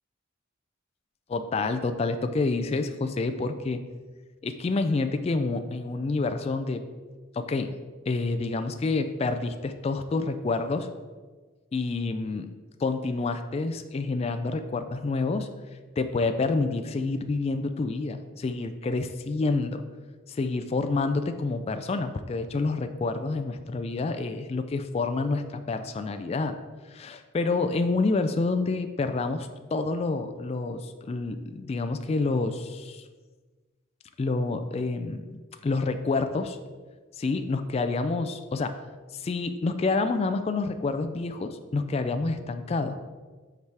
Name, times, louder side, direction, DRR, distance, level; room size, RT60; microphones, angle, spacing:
voice 1, 1.3-3.8 4.4-6.8 7.3-7.7 8.1-10.9 11.7-12.5 12.8-15.5 16.0-19.8 20.3-26.6 26.9-33.1 34.2-36.6 37.2-38.8 39.1-43.0, left 3 dB, 30° left, 8 dB, 0.3 m, -28 dB
8.0 x 4.7 x 3.4 m, 1.4 s
head